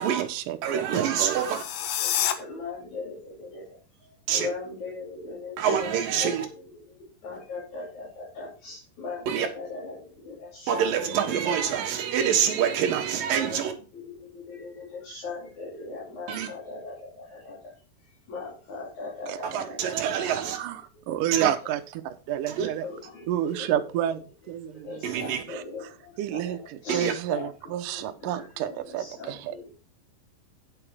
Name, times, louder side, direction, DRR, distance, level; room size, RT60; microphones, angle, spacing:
voice 1, 0.0-1.4 19.3-22.9 23.3-24.2 24.5-25.0 25.5-25.9 26.2-29.7, right 11 dB, 90° right, 1.8 m, -31 dB
voice 2, 0.6-1.6 4.3-4.5 5.6-6.5 9.3-9.5 10.7-13.7 16.3-16.5 19.4-20.6 21.3-21.5 22.5-22.7 25.0-25.4 26.9-27.1, right 8 dB, 65° right, 2.8 m, -26 dB
sound 1, 1.3-2.3, left 10 dB, 75° left, 2.0 m, -28 dB
voice 3, 2.0-11.4 13.5-17.7 18.3-19.9 20.4-20.5 22.8-23.9 24.7-29.7, left 3 dB, 45° left, 4.3 m, -40 dB
9.8 x 7.0 x 4.9 m
omnidirectional pair, 5.0 m